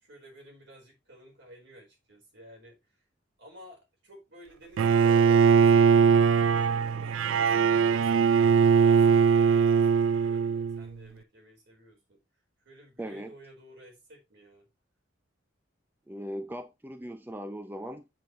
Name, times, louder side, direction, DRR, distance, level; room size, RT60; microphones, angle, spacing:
voice 1, 0.0-2.8 3.4-6.1 6.5-8.3 8.7-12.2 12.6-14.7, equal, 60° right, 4.4 m, -52 dB
Bowed string instrument, 4.8-10.9, right 6 dB, 80° right, 0.3 m, -21 dB
voice 2, 13.0-13.4 16.1-18.1, equal, 10° right, 0.5 m, -39 dB
7.5 x 7.4 x 3.1 m
head